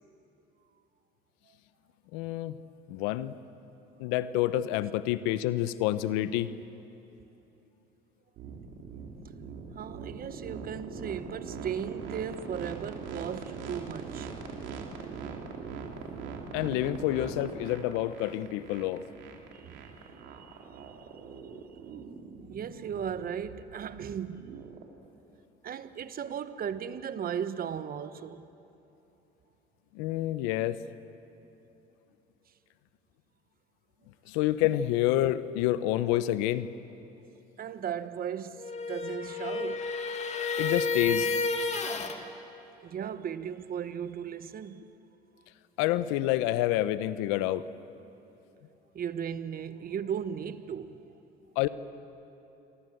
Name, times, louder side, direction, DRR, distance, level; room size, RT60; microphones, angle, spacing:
voice 1, 2.1-2.6 2.9-3.4 4.0-6.5 16.5-19.0 29.9-30.8 34.3-36.7 40.6-41.3 45.8-47.7 51.6-51.7, left 14 dB, 85° left, 0.9 m, -28 dB
sound 1, 8.4-24.9, right 5 dB, 75° right, 3.1 m, -42 dB
voice 2, 9.8-14.3 19.5-21.8 22.5-24.4 25.6-28.5 37.6-39.9 42.8-44.8 48.9-51.0, right 8 dB, 50° right, 1.3 m, -37 dB
sound 2, 38.6-42.2, left 4 dB, 35° left, 2.5 m, -31 dB
28.0 x 23.5 x 7.9 m
supercardioid pair, 80°, 19 cm